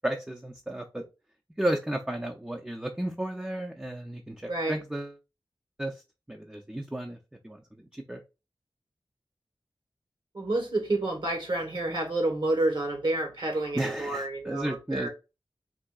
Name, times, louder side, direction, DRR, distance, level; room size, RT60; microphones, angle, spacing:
voice 1, 0.0-1.0 1.6-5.2 5.8-6.0 6.3-7.2 7.4-7.6 7.9-8.2 13.7-15.1, right 1 dB, 10° right, 0.4 m, -33 dB
voice 2, 10.3-15.1, right 2 dB, 60° right, 1.1 m, -29 dB
3.6 x 2.3 x 2.3 m
wide cardioid pair, 60°, 9 cm